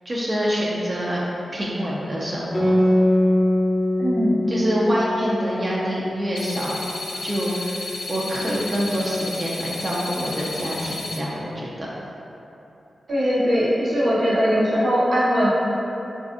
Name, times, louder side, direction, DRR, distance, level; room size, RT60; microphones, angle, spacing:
voice 1, 0.0-1.2 1.5-2.7 4.5-6.8 7.2-11.9, equal, 40° right, -6 dB, 0.4 m, -26 dB
Guitar, 2.5-7.5, left 1 dB, 20° left, 0.6 m, -23 dB
voice 2, 4.0-4.5 13.1-15.5, equal, 60° right, -8 dB, 0.8 m, -20 dB
sound 1, 6.4-11.2, left 3 dB, 70° left, 0.4 m, -33 dB
3.2 x 2.4 x 2.5 m, 3.0 s
supercardioid pair, 40°, 0 cm